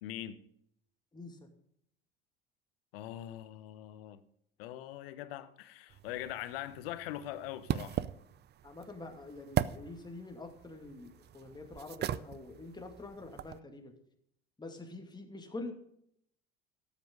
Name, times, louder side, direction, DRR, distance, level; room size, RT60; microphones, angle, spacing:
voice 1, 0.0-0.4 2.9-4.2 4.6-8.0, left 13 dB, 70° left, 1.1 m, -42 dB
voice 2, 1.1-1.5 8.6-13.9 14.6-15.7, left 2 dB, 15° left, 2.4 m, -46 dB
sound 1, 5.9-13.6, right 11 dB, 35° right, 0.6 m, -39 dB
13.0 x 8.9 x 5.3 m
hypercardioid pair, 70°, 30 cm